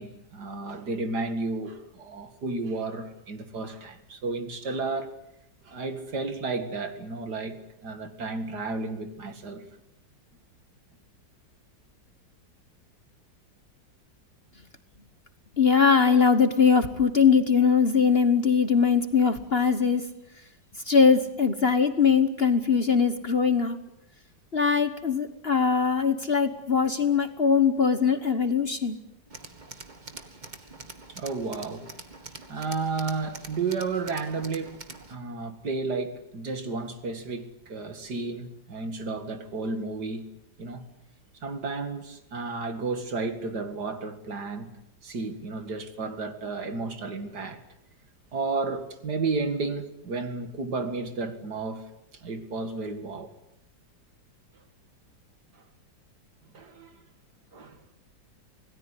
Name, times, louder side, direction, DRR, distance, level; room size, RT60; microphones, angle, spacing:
voice 1, 0.0-5.2 5.6-9.7 31.1-31.9 32.5-34.8 35.1-40.2 40.6-40.8 41.4-44.7 45.0-47.6 48.3-53.3 55.5-55.6 56.5-57.0 57.5-57.8, right 3 dB, 60° right, 2.7 m, -32 dB
voice 2, 15.6-20.1 20.8-23.8 24.5-29.0, left 6 dB, 35° left, 1.3 m, -21 dB
Tools, 29.3-35.1, right 3 dB, 25° right, 1.8 m, -45 dB
26.5 x 18.5 x 9.8 m
omnidirectional pair, 2.0 m